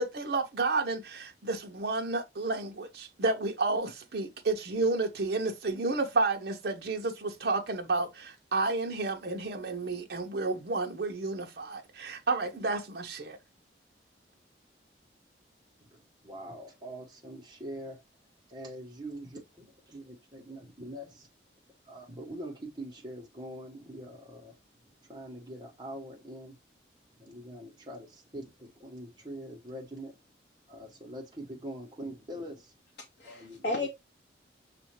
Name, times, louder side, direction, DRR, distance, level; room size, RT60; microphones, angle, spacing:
voice 1, 0.0-13.4, right 3 dB, 60° right, 0.7 m, -31 dB
voice 2, 15.8-18.0 18.5-21.3 21.8-24.6 24.9-26.6 27.2-30.2 30.7-32.7 33.2-33.9, right 1 dB, 25° right, 1.1 m, -43 dB
voice 3, 33.0-33.9, left 2 dB, 55° left, 0.7 m, -34 dB
6.2 x 2.5 x 3.0 m
head